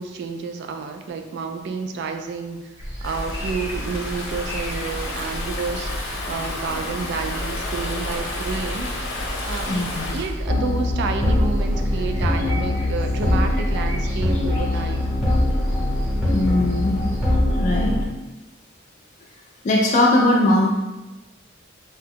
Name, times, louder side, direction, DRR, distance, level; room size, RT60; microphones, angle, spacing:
voice 1, 0.0-2.7 3.0-8.9 9.4-15.1, right 4 dB, 60° right, 5 dB, 0.3 m, -30 dB
sound 1, 2.8-17.3, equal, 75° right, 1.2 m, -33 dB
Stream / Ocean, 3.0-10.3, left 2 dB, 85° left, 0.7 m, -32 dB
voice 2, 9.6-10.2 16.3-17.1 17.5-18.0 19.6-20.7, left 1 dB, 35° left, -1 dB, 0.3 m, -20 dB
sound 2, 10.4-18.0, left 1 dB, ahead, 1.0 m, -22 dB
2.8 x 2.2 x 3.4 m, 1.1 s
head